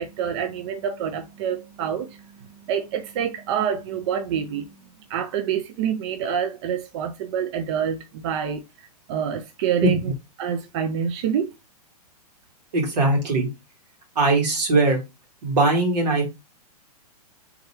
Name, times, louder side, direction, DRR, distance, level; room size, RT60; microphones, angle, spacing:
voice 1, 0.0-2.2 2.7-4.7 5.1-8.6 9.1-10.0 10.4-11.5, right 8 dB, 45° right, 0.4 m, -27 dB
voice 2, 12.7-13.5 14.2-15.0 15.4-16.3, right 2 dB, 85° right, 2.1 m, -20 dB
3.5 x 2.8 x 3.3 m
hypercardioid pair, 145°, 20 cm